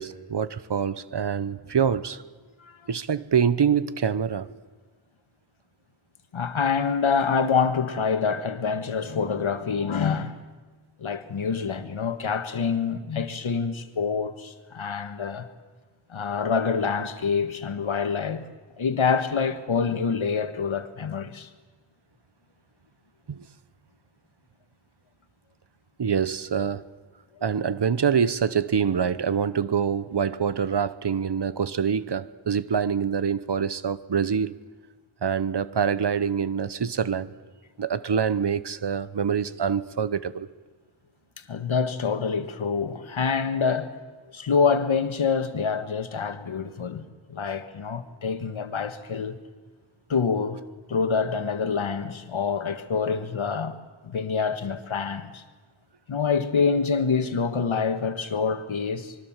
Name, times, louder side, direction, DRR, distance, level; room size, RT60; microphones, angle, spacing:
voice 1, 0.0-2.2 2.9-4.5 23.3-23.4 26.0-26.8 27.4-34.5 35.2-37.3 37.8-40.5, right 7 dB, 60° right, 1.0 m, -25 dB
voice 2, 6.3-10.4 11.0-15.5 16.1-18.4 18.8-21.5 41.5-43.9 44.3-49.4 50.1-50.6 50.9-53.8 54.0-55.4 56.1-59.2, left 5 dB, 80° left, 1.7 m, -26 dB
26.0 x 22.5 x 7.4 m
wide cardioid pair, 85°, 46 cm